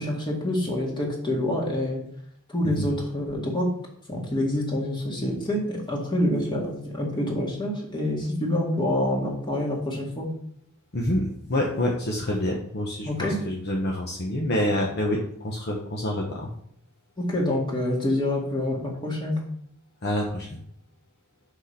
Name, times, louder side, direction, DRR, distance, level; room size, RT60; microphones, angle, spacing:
voice 1, 0.0-2.0 2.5-3.7 4.1-10.3 13.0-13.4 17.2-19.4, left 1 dB, 20° left, -2 dB, 2.1 m, -27 dB
voice 2, 10.9-16.5 20.0-20.5, left 1 dB, 50° left, 0 dB, 1.1 m, -27 dB
6.3 x 5.0 x 5.7 m, 0.66 s
head